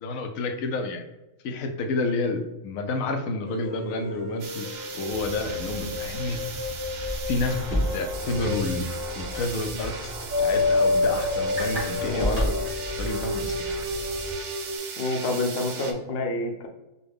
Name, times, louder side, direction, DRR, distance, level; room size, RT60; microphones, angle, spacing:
voice 1, 0.0-1.0 1.4-4.7 4.9-6.4 7.3-8.9 9.2-10.1 10.4-12.5 13.0-13.8, left 3 dB, 85° left, 4 dB, 1.0 m, -30 dB
sound 1, 3.4-14.8, left 3 dB, 15° left, 1.0 m, -30 dB
sound 2, 4.4-15.9, right 5 dB, 85° right, 1.1 m, -38 dB
sound 3, 5.1-14.3, equal, 65° right, 2.0 m, -34 dB
voice 2, 12.0-12.3 15.0-16.7, left 2 dB, 55° left, 2 dB, 0.8 m, -28 dB
5.4 x 2.2 x 3.4 m, 1.0 s
omnidirectional pair, 1.4 m